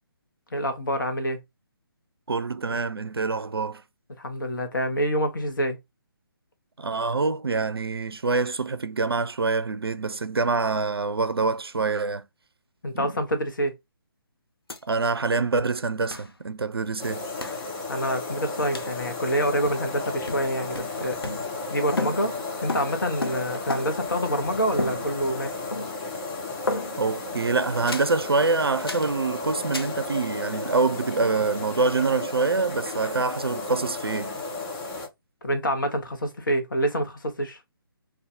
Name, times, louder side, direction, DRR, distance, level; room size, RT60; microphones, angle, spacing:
voice 1, 0.5-1.4 4.2-5.8 12.8-13.7 17.9-21.2 21.7-22.3 22.6-25.6 35.4-37.6, equal, 60° left, 0.9 m, -27 dB
voice 2, 2.3-3.8 6.8-12.2 12.9-13.1 14.8-17.2 27.0-34.4, right 4 dB, 85° right, 0.4 m, -25 dB
sound 1, 14.7-14.8 15.1-15.2 16.1-16.3 17.4-17.7 18.7-19.0 19.7-20.0 20.3-21.7 22.0-24.1 24.8-25.4 25.7-26.2 26.7-27.2 27.9-28.2 28.9-29.2 29.7-30.0, left 2 dB, 80° left, 0.7 m, -33 dB
sound 2, 17.0-35.1, left 3 dB, 15° left, 0.7 m, -34 dB
2.6 x 2.4 x 3.4 m
figure-of-eight pair, 145°, 12 cm